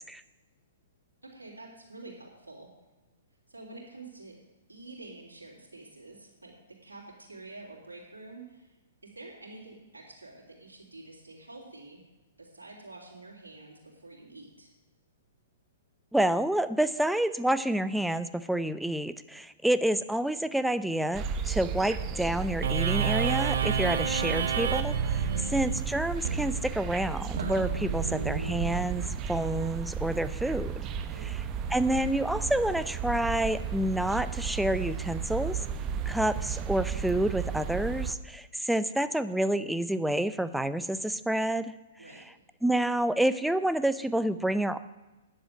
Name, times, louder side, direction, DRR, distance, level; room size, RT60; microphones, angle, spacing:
voice 1, 1.2-2.7 3.5-4.4 4.7-8.8 9.0-12.0 12.4-14.7 31.1-31.3 42.0-42.2, right 2 dB, 90° right, -3 dB, 3.2 m, -48 dB
voice 2, 16.1-30.8 31.2-31.4 31.7-35.6 36.1-41.7 42.6-44.8, right 1 dB, ahead, 13 dB, 0.6 m, -28 dB
High St Kensington - Birds singing, 21.1-38.2, right 7 dB, 30° right, 0.8 m, -34 dB
sound 1, 22.6-29.4, right 7 dB, 65° right, 1.0 m, -30 dB
9.8 x 7.6 x 8.9 m, 1.1 s
figure-of-eight pair, 115°, 0 cm